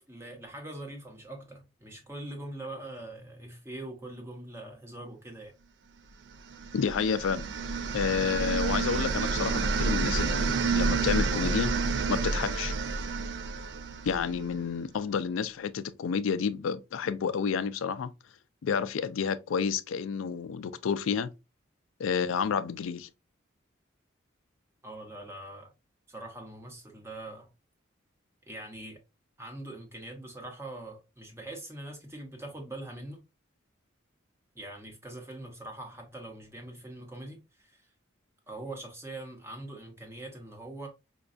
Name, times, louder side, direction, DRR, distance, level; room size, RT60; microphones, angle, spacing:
voice 1, 0.0-5.5 24.8-25.7 26.1-27.5 28.5-29.0 29.4-33.2 34.5-37.9 38.5-40.9, right 1 dB, 15° right, 0.8 m, -43 dB
sound 1, 6.5-14.5, right 4 dB, 65° right, 0.4 m, -29 dB
voice 2, 6.7-7.5 7.9-11.7 12.1-12.7 14.0-18.1 18.6-21.3 22.0-23.1, left 6 dB, 85° left, 0.4 m, -30 dB
5.1 x 2.3 x 2.4 m
head